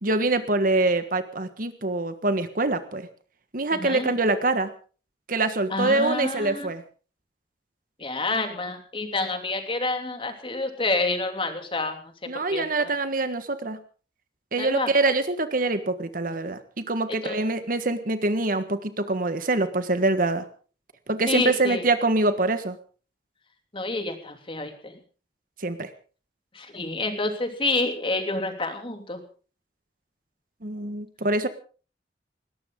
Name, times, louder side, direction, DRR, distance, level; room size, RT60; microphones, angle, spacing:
voice 1, 0.0-3.1 3.5-4.7 5.3-6.8 12.3-13.8 14.5-20.4 21.1-22.8 25.6-25.9 30.6-31.5, right 2 dB, 50° right, 10 dB, 1.5 m, -25 dB
voice 2, 3.7-4.1 5.7-6.7 8.0-12.9 14.6-14.9 17.2-17.4 21.3-21.8 23.7-24.9 26.5-29.2, left 2 dB, 30° left, 6 dB, 2.9 m, -28 dB
20.5 x 18.0 x 3.8 m, 0.40 s
head